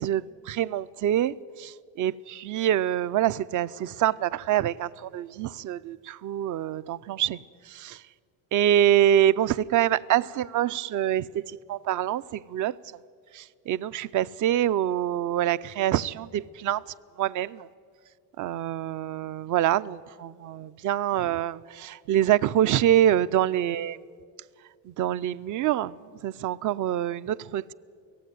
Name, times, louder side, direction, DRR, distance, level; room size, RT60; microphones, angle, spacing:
voice 1, 0.0-7.4 7.7-8.0 8.5-11.4 11.7-12.7 13.3-16.8 17.2-17.7 18.4-24.0 24.9-26.0 26.2-27.7, right 11 dB, 45° right, 0.5 m, -25 dB
18.0 x 15.5 x 9.2 m
cardioid pair, 125°, 44 cm